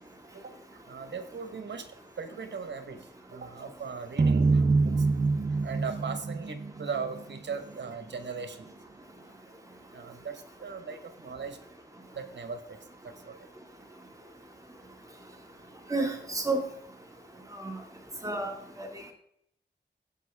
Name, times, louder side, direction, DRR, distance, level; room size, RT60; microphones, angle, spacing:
voice 1, 0.3-5.1 5.5-8.7 9.9-11.6 12.1-13.5, right 5 dB, 80° right, 8 dB, 1.3 m, -39 dB
sound 1, 4.2-7.4, right 3 dB, 40° right, 0.6 m, -25 dB
voice 2, 15.9-16.7 17.5-17.8 18.2-18.5 18.8-19.1, right 2 dB, 20° right, 2 dB, 2.3 m, -31 dB
15.0 x 5.4 x 3.5 m, 0.70 s
wide cardioid pair, 90°, 18 cm